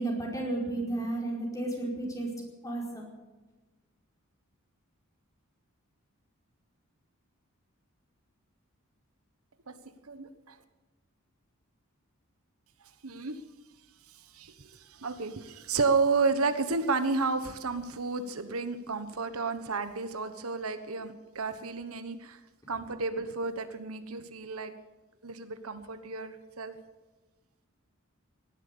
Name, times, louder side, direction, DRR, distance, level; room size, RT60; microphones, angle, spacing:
voice 1, 0.0-2.3 2.6-3.1, right 2 dB, 15° left, -2 dB, 4.9 m, -32 dB
voice 2, 10.1-10.6 13.0-13.4 14.1-22.4 22.7-24.7 25.2-26.7, right 4 dB, 80° right, 9 dB, 1.3 m, -32 dB
18.0 x 11.5 x 7.0 m, 1.2 s
head